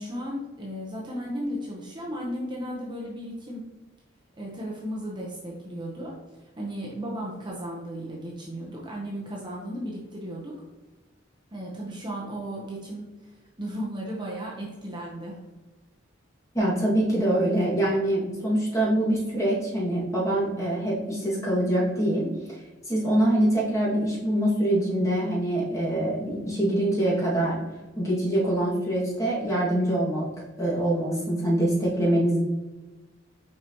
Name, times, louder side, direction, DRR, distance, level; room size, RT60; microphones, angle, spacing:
voice 1, 0.0-3.6 4.4-10.5 11.5-15.4, equal, 25° right, -3 dB, 0.9 m, -35 dB
voice 2, 16.5-22.6 22.9-27.6 28.0-30.2 30.6-32.4, right 1 dB, 15° left, -6 dB, 2.0 m, -24 dB
6.4 x 4.9 x 3.0 m, 1.1 s
head